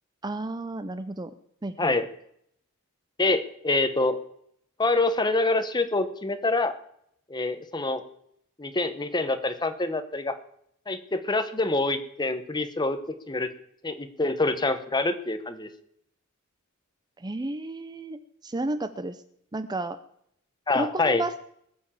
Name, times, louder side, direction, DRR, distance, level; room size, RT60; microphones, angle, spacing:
voice 1, 0.2-1.3 1.6-1.9 17.2-19.2 19.5-20.0 20.7-21.4, right 2 dB, 20° right, 11 dB, 0.5 m, -32 dB
voice 2, 3.2-4.1 4.8-6.7 7.3-8.0 8.6-10.3 10.9-13.0 13.3-13.5 13.8-15.7 20.7-21.2, left 2 dB, 20° left, 9 dB, 1.0 m, -26 dB
20.0 x 7.2 x 7.3 m, 0.71 s
head